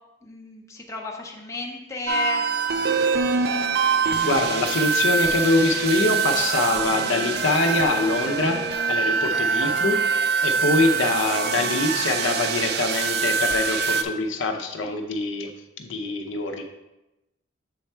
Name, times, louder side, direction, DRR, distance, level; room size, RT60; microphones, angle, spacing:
voice 1, 0.2-2.5 10.5-10.6, left 2 dB, 15° left, 0 dB, 0.7 m, -32 dB
sound 1, 2.1-14.0, right 5 dB, 50° right, 0.4 m, -24 dB
voice 2, 4.2-10.0 10.4-15.5 15.8-16.6, left 2 dB, 65° left, 4 dB, 0.7 m, -24 dB
7.7 x 3.4 x 4.3 m, 0.98 s
head